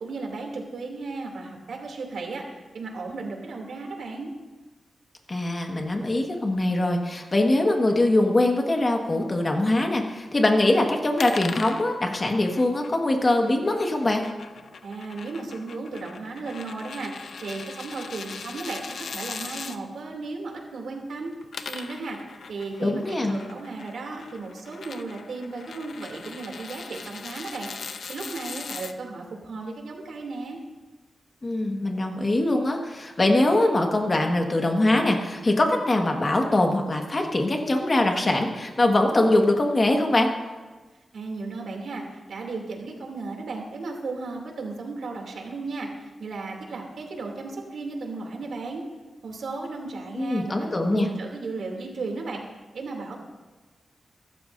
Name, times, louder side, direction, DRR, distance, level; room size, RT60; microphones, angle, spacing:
voice 1, 0.0-2.5 2.7-4.3 14.8-21.3 21.7-22.2 22.5-27.7 28.1-30.6 41.1-48.8 49.2-52.4 52.7-53.2, right 3 dB, 80° right, 1 dB, 2.8 m, -35 dB
voice 2, 5.3-14.2 22.8-23.4 31.4-40.3 50.1-51.1, left 1 dB, 30° left, 2 dB, 1.6 m, -22 dB
sound 1, 11.2-19.8 21.3-28.9, left 5 dB, 65° left, 0.7 m, -40 dB
24.0 x 13.0 x 2.7 m, 1.3 s
wide cardioid pair, 160°, 0 cm